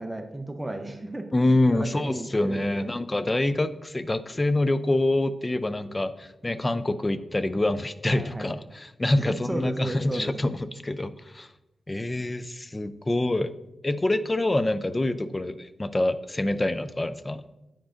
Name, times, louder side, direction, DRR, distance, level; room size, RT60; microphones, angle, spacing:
voice 1, 0.0-1.3 1.7-2.9 8.1-8.5 9.1-10.5, right 1 dB, 15° right, 6 dB, 0.7 m, -34 dB
voice 2, 1.3-11.5 11.9-13.6 13.8-17.5, left 2 dB, 25° left, 13 dB, 0.4 m, -26 dB
9.0 x 4.8 x 2.5 m, 0.95 s
cardioid pair, 65°, 0 cm